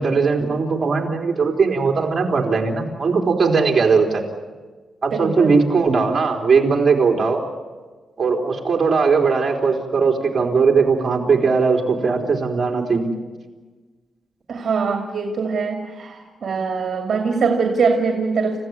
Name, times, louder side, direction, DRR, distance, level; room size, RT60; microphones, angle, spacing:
voice 1, 0.0-4.2 5.0-7.4 8.2-13.1, right 4 dB, 35° right, 0 dB, 3.8 m, -19 dB
voice 2, 5.1-5.6 14.5-18.6, right 5 dB, 55° right, 3 dB, 2.5 m, -22 dB
29.5 x 15.5 x 9.6 m, 1.4 s
wide cardioid pair, 140°, 0 cm